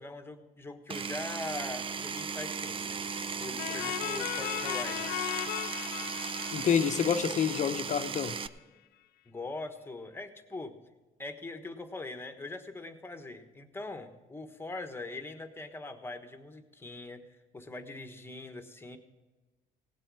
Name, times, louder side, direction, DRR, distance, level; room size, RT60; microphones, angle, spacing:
voice 1, 0.0-3.0 3.4-5.1 9.3-10.7 11.2-17.3 17.5-19.0, left 2 dB, 15° left, 7 dB, 1.4 m, -42 dB
Power tool, 0.9-8.5, right 5 dB, 30° right, 0.6 m, -36 dB
sound 1, 3.6-8.2, left 15 dB, 65° left, 0.5 m, -37 dB
voice 2, 6.5-8.3, left 7 dB, 45° left, 10 dB, 0.9 m, -28 dB
18.0 x 7.7 x 4.8 m, 1.2 s
cardioid pair, 110°, 17 cm